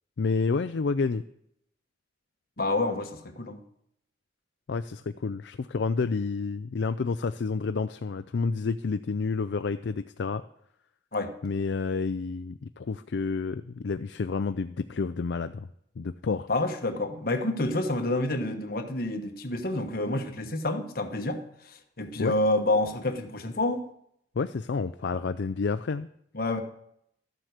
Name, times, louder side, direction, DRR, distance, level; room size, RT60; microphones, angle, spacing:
voice 1, 0.2-1.2 4.7-10.4 11.4-15.7 16.0-16.5 22.2-22.3 24.4-26.1, left 4 dB, 65° left, 0.4 m, -29 dB
voice 2, 2.6-3.6 11.1-11.3 16.5-23.8 26.3-26.6, left 2 dB, 50° left, 1.3 m, -28 dB
13.0 x 7.7 x 6.5 m
head